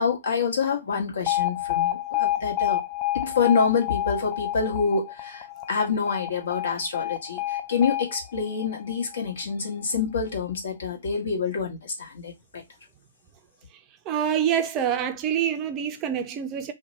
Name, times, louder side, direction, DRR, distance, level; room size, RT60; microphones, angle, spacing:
voice 1, 0.0-2.8 3.2-12.6, left 5 dB, 65° left, 1.1 m, -27 dB
Alarm, 1.3-9.3, left 14 dB, 30° left, 0.4 m, -29 dB
voice 2, 14.1-16.7, right 9 dB, 25° right, 0.5 m, -26 dB
2.8 x 2.2 x 3.8 m
figure-of-eight pair, 125°, 0 cm